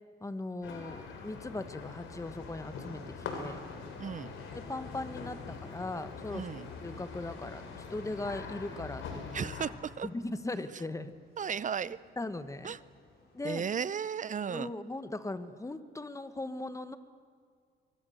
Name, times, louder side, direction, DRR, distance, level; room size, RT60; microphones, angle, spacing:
voice 1, 0.2-3.6 4.5-6.5 6.8-9.5 10.0-11.1 11.9-12.7 13.3-13.6 14.5-17.0, left 2 dB, 15° left, 11 dB, 1.5 m, -39 dB
sound 1, 0.6-9.7, left 5 dB, 75° left, 4.0 m, -43 dB
sound 2, 1.3-13.5, left 2 dB, 50° left, 6.2 m, -59 dB
voice 2, 4.0-4.3 6.3-6.7 9.3-10.1 11.4-12.0 12.6-12.8 13.4-14.7, right 7 dB, 40° right, 18 dB, 0.6 m, -35 dB
24.0 x 23.0 x 6.6 m, 2.2 s
cardioid pair, 90°, 20 cm